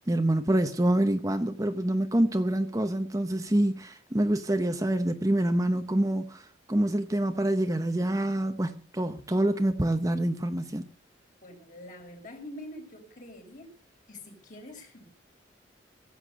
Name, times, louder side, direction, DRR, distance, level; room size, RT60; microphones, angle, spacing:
voice 1, 0.1-10.9, right 1 dB, 20° right, 0.8 m, -26 dB
voice 2, 11.4-13.7 14.1-15.1, left 1 dB, 45° left, 4.7 m, -45 dB
16.0 x 8.2 x 6.7 m
head